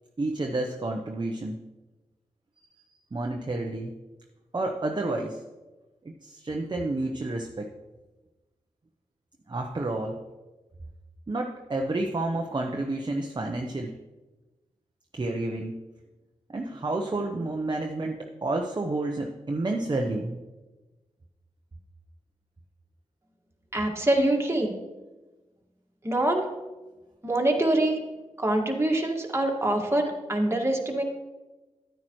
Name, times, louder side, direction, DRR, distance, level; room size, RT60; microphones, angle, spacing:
voice 1, 0.2-1.6 3.1-3.9 4.5-5.4 6.2-7.7 9.5-10.2 11.3-13.9 15.1-15.8 16.5-20.4, right 2 dB, 35° right, 2 dB, 0.9 m, -30 dB
voice 2, 23.7-24.7 26.0-26.5 27.2-28.0 28.4-31.0, right 1 dB, 20° right, 1 dB, 1.9 m, -24 dB
9.5 x 9.3 x 3.1 m, 1.1 s
cardioid pair, 40°, 12 cm